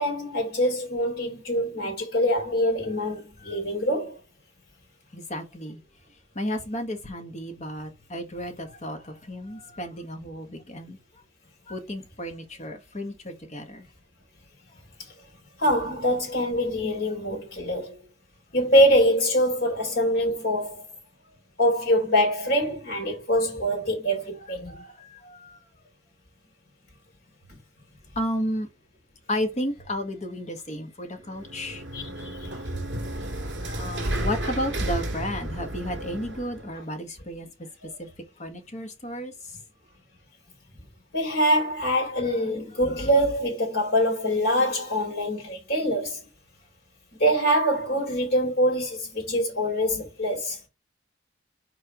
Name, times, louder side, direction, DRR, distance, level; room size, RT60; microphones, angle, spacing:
voice 1, 0.0-4.2 15.6-18.0 18.5-20.9 21.6-24.8 27.5-27.6 31.9-32.5 36.7-36.8 37.8-37.9 41.1-46.3 47.2-50.6, equal, 55° left, 3.4 m, -24 dB
voice 2, 5.1-5.8 6.3-11.0 11.7-13.9 24.7-25.6 28.1-28.7 29.3-31.8 33.4-37.5 38.0-38.1 38.4-39.3, equal, 40° left, 1.6 m, -33 dB
sound 1, 31.2-36.7, right 1 dB, 65° right, 2.5 m, -32 dB
4.8 x 4.8 x 5.1 m
head